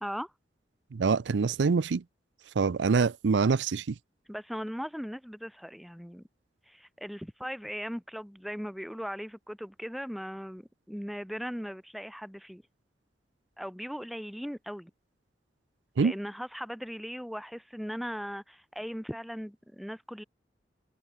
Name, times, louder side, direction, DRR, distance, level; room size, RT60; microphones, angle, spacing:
voice 1, 0.0-0.3 4.3-6.2 6.7-12.6 13.6-14.9 16.0-20.2, equal, ahead, 1.5 m, -38 dB
voice 2, 0.9-2.0 2.6-3.9 16.0-16.1, right 5 dB, 85° right, 0.5 m, -25 dB
head